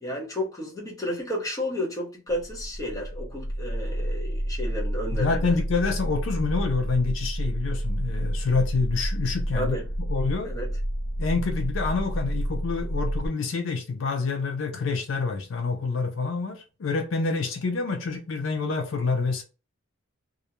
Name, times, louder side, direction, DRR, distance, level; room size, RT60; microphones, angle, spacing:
voice 1, 0.0-5.5 9.5-9.8 10.4-10.7, left 1 dB, 15° left, 0.7 m, -32 dB
sound 1, 2.3-13.3, equal, 80° right, 0.6 m, -29 dB
voice 2, 5.1-9.8 10.1-10.5 11.2-19.4, left 4 dB, 70° left, 0.4 m, -27 dB
2.4 x 2.1 x 2.8 m
head